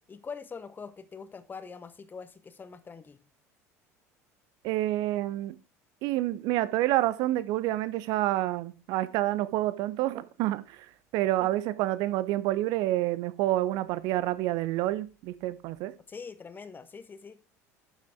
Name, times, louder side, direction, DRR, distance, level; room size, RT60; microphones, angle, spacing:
voice 1, 0.1-3.2 11.4-11.5 16.1-17.4, left 5 dB, 25° left, 1.1 m, -43 dB
voice 2, 4.6-5.6 6.0-10.9 11.1-15.9, right 15 dB, 50° right, 0.8 m, -28 dB
11.5 x 7.5 x 3.6 m
figure-of-eight pair, 65°, 8 cm